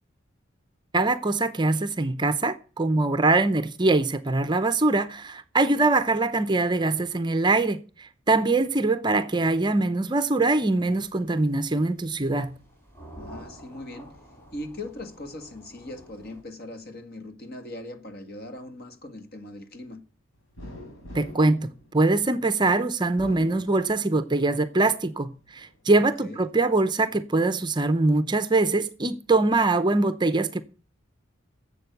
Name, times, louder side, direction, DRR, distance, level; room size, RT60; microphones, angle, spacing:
voice 1, 0.9-12.5 21.1-30.6, right 2 dB, 20° right, 0.6 m, -23 dB
sound 1, 10.4-16.4, right 1 dB, 10° left, 4.6 m, -49 dB
voice 2, 13.2-14.1 14.5-20.0 26.2-26.4, left 1 dB, 50° left, 1.8 m, -40 dB
sound 2, 20.6-22.5 23.0-24.4 24.8-25.7, equal, 75° left, 4.0 m, -44 dB
11.5 x 7.7 x 8.0 m
head